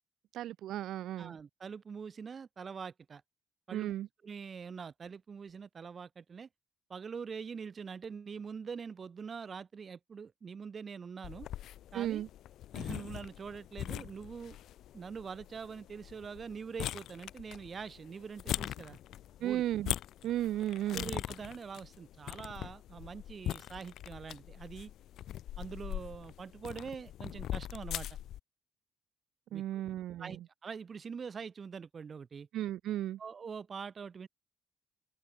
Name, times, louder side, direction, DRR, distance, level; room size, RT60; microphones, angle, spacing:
voice 1, 0.3-1.3 3.7-4.1 11.9-12.3 19.4-19.9 20.2-21.1 29.5-30.4 32.5-33.2, right 13 dB, 80° right, 2.6 m, -35 dB
voice 2, 1.2-3.2 3.7-3.9 4.2-6.5 6.9-11.5 11.9-12.3 12.7-14.6 14.9-19.0 19.4-19.6 20.9-24.9 25.6-28.1 29.5-29.8 30.2-32.5 33.2-34.3, right 6 dB, 45° right, 5.5 m, -44 dB
sound 1, 11.2-28.4, left 12 dB, 80° left, 1.4 m, -42 dB
open air
cardioid pair, 90°, 0 cm